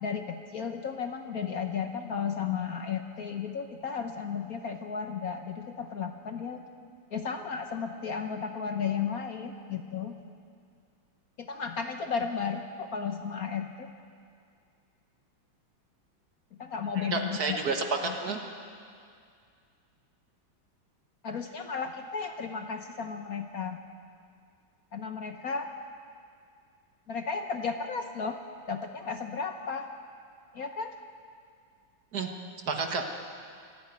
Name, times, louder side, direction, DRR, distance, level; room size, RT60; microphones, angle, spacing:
voice 1, 0.0-6.6 7.1-10.1 11.4-13.9 16.6-17.6 18.0-18.1 21.2-23.8 24.9-25.7 27.1-28.4 28.7-29.9 30.5-30.9, left 6 dB, 55° left, 5 dB, 1.2 m, -34 dB
voice 2, 17.0-18.4 32.1-32.3 32.7-33.1, right 4 dB, 50° right, 4 dB, 1.8 m, -30 dB
27.0 x 10.0 x 9.5 m, 2.3 s
omnidirectional pair, 2.2 m